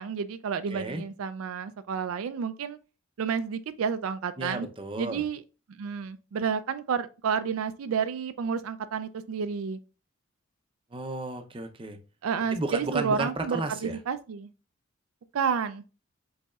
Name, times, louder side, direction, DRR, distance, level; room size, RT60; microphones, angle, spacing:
voice 1, 0.0-2.8 3.2-4.7 5.0-5.4 5.7-9.8 12.2-14.5 15.3-15.8, right 6 dB, 80° right, 0.4 m, -30 dB
voice 2, 0.7-1.0 4.4-5.2 10.9-12.0 12.5-14.0, right 2 dB, 25° right, 0.6 m, -33 dB
5.2 x 4.0 x 2.3 m
head